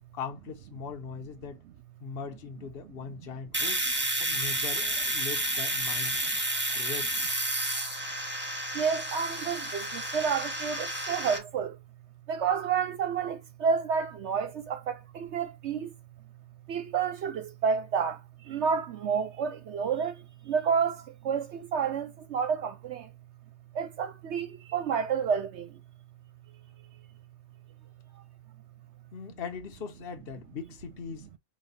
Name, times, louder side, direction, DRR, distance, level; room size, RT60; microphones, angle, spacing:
voice 1, 0.1-1.6 2.0-3.9 4.2-6.2 6.7-7.2 29.1-31.3, left 6 dB, 50° left, 1.1 m, -40 dB
Domestic sounds home sounds, 3.5-11.4, right 1 dB, 10° right, 0.8 m, -31 dB
voice 2, 8.7-11.8 12.3-15.9 16.7-23.1 23.7-25.8, right 6 dB, 65° right, 0.8 m, -30 dB
5.3 x 2.3 x 4.0 m
omnidirectional pair, 1.4 m